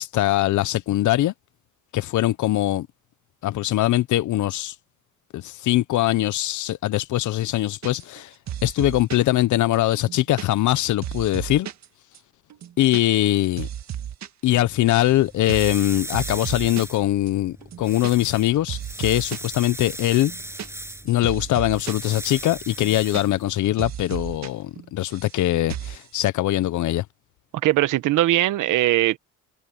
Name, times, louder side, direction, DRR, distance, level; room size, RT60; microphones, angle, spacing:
voice 1, 0.0-1.3 1.9-2.9 3.4-4.7 5.3-8.3 8.6-11.7 12.8-13.7 14.4-20.3 21.0-27.0, left 15 dB, 75° left, 0.8 m, -22 dB
sound 1, 7.8-8.2 8.5-9.3 9.7-11.9 12.1-12.2 12.5-13.0 13.3-14.3 14.5-15.2 15.5-15.8 16.1-17.0 17.3-17.4 17.6-18.4 18.7-19.5 19.9-22.1 22.4-22.5 22.7-23.5 23.8-24.5 24.8-25.4 25.7-26.0, right 10 dB, 65° right, 1.9 m, -34 dB
sound 2, 14.6-23.8, right 1 dB, 10° right, 7.7 m, -38 dB
voice 2, 27.6-29.2, right 15 dB, 85° right, 1.2 m, -20 dB
cardioid pair, 90°, 30 cm